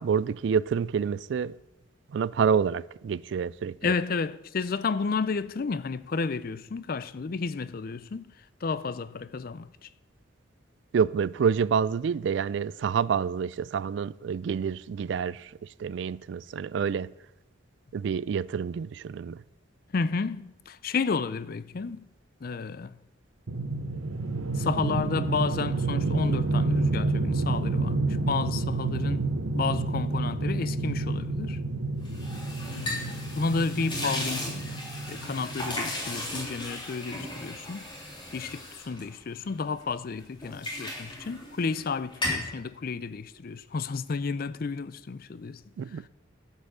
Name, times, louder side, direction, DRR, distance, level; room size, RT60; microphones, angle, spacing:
voice 1, 0.0-1.5 2.1-3.9 10.9-17.1 17.9-19.4 45.8-46.0, right 6 dB, 65° right, 0.3 m, -28 dB
voice 2, 3.8-8.2 8.6-9.9 19.9-22.0 22.4-23.0 24.5-29.2 29.5-31.6 32.7-34.8 35.1-37.9 38.3-45.6 45.9-46.0, left 4 dB, 50° left, 0.4 m, -31 dB
sound 1, 23.5-35.7, right 3 dB, 90° right, 0.7 m, -29 dB
sound 2, 32.0-39.8 40.2-41.9 42.1-42.5, left 1 dB, 25° left, 3.3 m, -36 dB
12.0 x 5.5 x 7.8 m
head